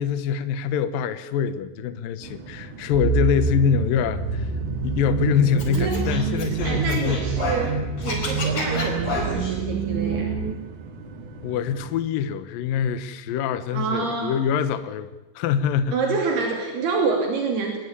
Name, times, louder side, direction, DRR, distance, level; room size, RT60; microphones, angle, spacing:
voice 1, 0.0-4.5 4.8-7.2 8.1-8.2 11.4-16.2, left 7 dB, 70° left, 12 dB, 2.4 m, -24 dB
sound 1, 2.2-12.0, right 3 dB, 50° right, 3.5 m, -41 dB
sound 2, 2.9-10.5, right 5 dB, 90° right, 4.0 m, -26 dB
Scratching (performance technique), 5.6-7.7 8.0-9.6, left 3 dB, 40° left, 5.5 m, -31 dB
voice 2, 6.6-7.8 8.0-10.3 13.7-14.4 15.9-17.8, right 4 dB, 70° right, 2 dB, 5.0 m, -27 dB
24.5 x 20.0 x 9.9 m, 1.0 s
omnidirectional pair, 4.8 m